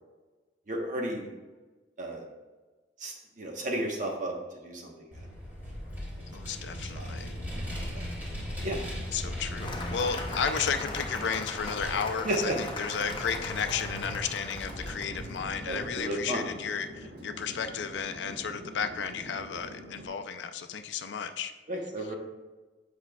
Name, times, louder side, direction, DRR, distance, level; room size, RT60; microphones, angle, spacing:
voice 1, 0.7-1.3 2.0-2.2 3.0-4.3 4.6-5.2 6.6-7.3 7.9-8.1 8.6-8.8 12.2-12.5 15.7-16.4 21.7-22.2, right 1 dB, 45° right, 1 dB, 1.0 m, -33 dB
Vehicle, 5.1-16.0, equal, 10° right, 1.9 m, -39 dB
voice 2, 6.3-7.3 9.1-21.5, left 6 dB, 85° left, 8 dB, 0.4 m, -33 dB
Cheering / Applause, 9.6-15.4, left 2 dB, 30° left, 0.7 m, -39 dB
Chatter / Fixed-wing aircraft airplane, 14.6-20.1, equal, 70° right, 1.0 m, -45 dB
8.1 x 5.1 x 2.3 m, 1.3 s
head